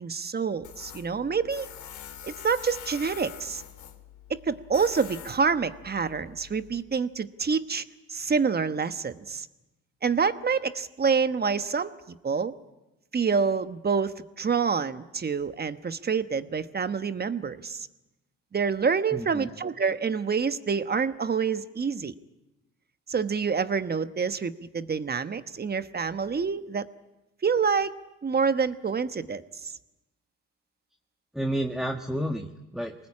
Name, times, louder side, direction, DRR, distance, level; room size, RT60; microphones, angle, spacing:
voice 1, 0.0-1.7 2.2-3.6 4.3-7.8 8.1-9.5 10.0-12.5 13.1-17.9 18.5-22.1 23.1-26.9 27.4-27.9 28.2-29.7, right 5 dB, 30° right, 11 dB, 1.2 m, -27 dB
Tools, 0.6-6.8, left 10 dB, 75° left, 2.1 m, -45 dB
voice 2, 19.1-19.5 31.3-33.1, right 1 dB, ahead, 4 dB, 1.4 m, -31 dB
24.0 x 19.5 x 8.6 m, 0.99 s
cardioid pair, 90°, 30 cm